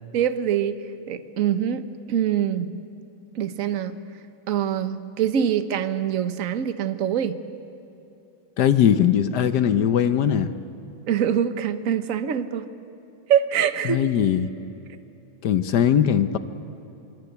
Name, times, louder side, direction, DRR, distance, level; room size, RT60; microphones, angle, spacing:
voice 1, 0.1-2.8 3.3-4.0 4.5-7.4 11.1-12.6 13.3-14.0, right 9 dB, 50° right, 10 dB, 1.1 m, -24 dB
voice 2, 8.6-10.5 13.8-14.5 15.4-16.4, left 9 dB, 60° left, 11 dB, 1.2 m, -20 dB
27.5 x 23.5 x 8.1 m, 2.9 s
omnidirectional pair, 2.4 m